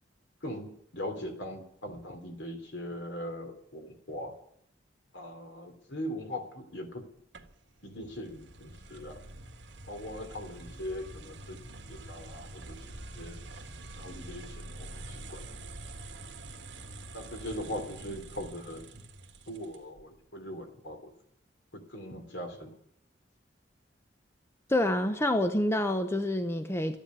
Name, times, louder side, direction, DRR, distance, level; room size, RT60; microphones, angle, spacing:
voice 1, 0.4-4.3 5.1-7.0 7.8-9.2 9.9-13.4 14.0-15.5 17.1-18.8 19.5-21.1 21.7-22.7, left 1 dB, 70° left, 3.2 m, -40 dB
sound 1, 7.3-20.0, right 2 dB, 70° right, 1.7 m, -46 dB
voice 2, 24.7-27.0, left 1 dB, 15° left, 0.7 m, -27 dB
13.5 x 10.5 x 9.5 m
head